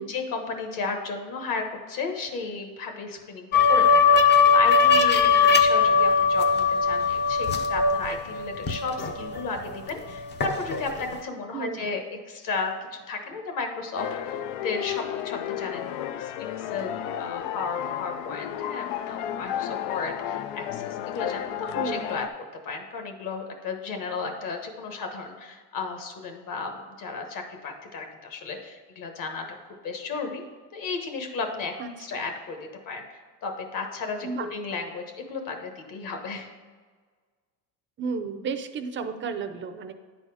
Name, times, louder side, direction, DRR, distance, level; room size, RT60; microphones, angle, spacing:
voice 1, 0.0-12.0 12.3-16.3 16.6-22.2 22.6-29.5 29.8-30.4 30.7-31.7 32.0-32.6 32.8-36.5, left 4 dB, 45° left, 4 dB, 1.3 m, -34 dB
sound 1, 3.5-9.8 10.1-11.1, left 5 dB, 25° left, 0.6 m, -20 dB
sound 2, 14.0-22.3, left 10 dB, 80° left, 0.6 m, -32 dB
voice 2, 21.7-22.1 31.8-32.2 34.2-34.5 38.0-39.9, right 5 dB, 25° right, 8 dB, 0.5 m, -33 dB
9.8 x 4.2 x 4.8 m, 1.5 s
cardioid pair, 135°, 45 cm